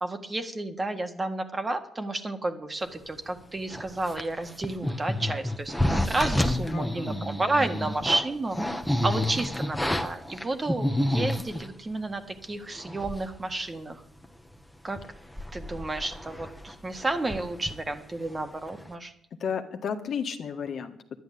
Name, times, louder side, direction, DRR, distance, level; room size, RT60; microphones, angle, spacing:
voice 1, 0.0-8.6 9.0-14.0 14.8-15.0 15.5-19.1, right 2 dB, 25° right, 7 dB, 1.7 m, -31 dB
sound 1, 3.7-11.7 12.4-12.5 12.8-13.4 13.7-13.8 14.2-14.5 14.9-18.4 18.7-18.9, left 1 dB, 5° left, 1.3 m, -30 dB
voice 2, 6.7-7.3 19.4-21.2, left 7 dB, 60° left, 5 dB, 1.6 m, -33 dB
11.0 x 11.0 x 8.5 m, 0.71 s
cardioid pair, 90°, 0 cm